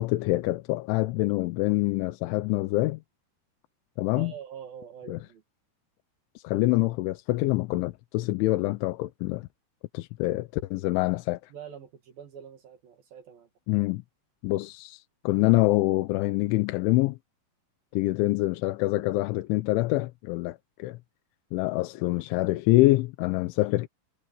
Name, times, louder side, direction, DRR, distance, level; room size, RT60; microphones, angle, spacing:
voice 1, 0.0-3.0 4.0-4.3 5.1-5.2 6.4-9.5 9.9-11.4 13.7-14.0 14.4-17.2 17.9-21.0 21.5-23.9, left 19 dB, 90° left, 3.2 m, -25 dB
voice 2, 4.1-5.4 11.5-13.5, right 8 dB, 60° right, 3.3 m, -44 dB
omnidirectional pair, 5.4 m